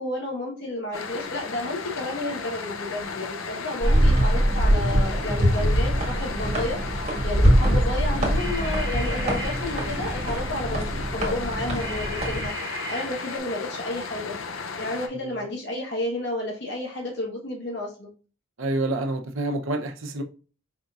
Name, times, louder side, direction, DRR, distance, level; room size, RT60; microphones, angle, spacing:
voice 1, 0.0-14.4 14.8-18.1, left 1 dB, 55° left, 1.1 m, -31 dB
sound 1, 0.9-15.1, left 5 dB, 90° left, 0.6 m, -35 dB
sound 2, 3.8-12.5, equal, 30° right, 1.6 m, -23 dB
sound 3, 8.4-10.7 11.8-13.4, equal, 35° left, 1.9 m, -36 dB
voice 2, 10.7-11.0 15.1-15.4 18.6-20.2, right 2 dB, 80° right, 0.7 m, -29 dB
5.0 x 4.0 x 2.4 m
head